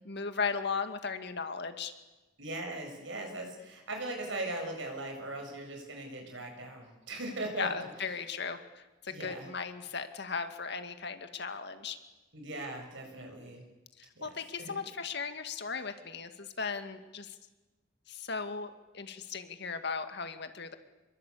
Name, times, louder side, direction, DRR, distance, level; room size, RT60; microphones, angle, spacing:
voice 1, 0.1-1.9 7.6-12.0 14.0-17.3 18.1-20.8, left 5 dB, 60° left, 8 dB, 2.1 m, -37 dB
voice 2, 2.4-7.9 9.1-9.5 12.3-13.6 14.2-14.3 14.6-14.8, right 2 dB, 65° right, 3 dB, 7.6 m, -39 dB
27.0 x 23.0 x 8.6 m, 1.1 s
head